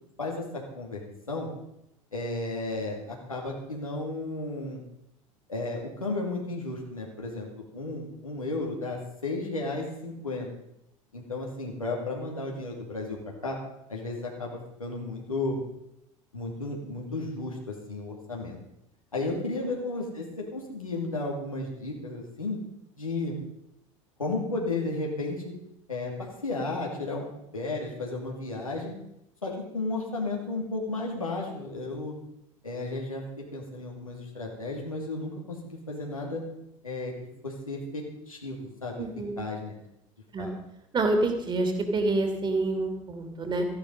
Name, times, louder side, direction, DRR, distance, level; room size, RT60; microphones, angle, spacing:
voice 1, 0.2-1.0 1.3-1.5 2.1-4.8 5.5-10.5 11.1-13.6 13.9-15.6 16.3-18.6 19.1-22.6 22.9-23.3 24.2-25.4 25.9-27.2 27.5-28.9 29.4-32.2 32.6-36.4 36.8-37.1 37.4-39.0 39.4-39.7 40.4-40.5, left 2 dB, 85° left, -2 dB, 2.6 m, -33 dB
voice 2, 39.0-39.3 40.3-40.5 40.9-43.7, right 2 dB, 25° right, 5 dB, 2.9 m, -27 dB
14.5 x 11.0 x 5.4 m, 0.81 s
figure-of-eight pair, 75°, 17 cm